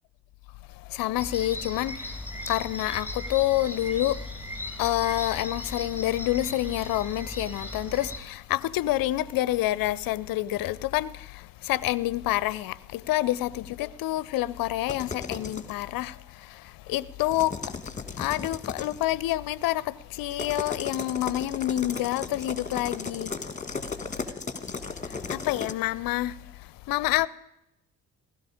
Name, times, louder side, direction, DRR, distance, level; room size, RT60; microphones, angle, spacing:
voice 1, 0.8-4.3 4.8-17.8 18.1-23.4 25.0-27.3, left 15 dB, 50° left, 0.6 m, -28 dB
sound 1, 1.2-8.2, left 1 dB, 5° right, 4.0 m, -37 dB
sound 2, 14.9-15.7 17.2-19.0 20.3-25.7, left 4 dB, 15° left, 1.3 m, -36 dB
16.0 x 12.5 x 5.0 m
hypercardioid pair, 45°, 45 cm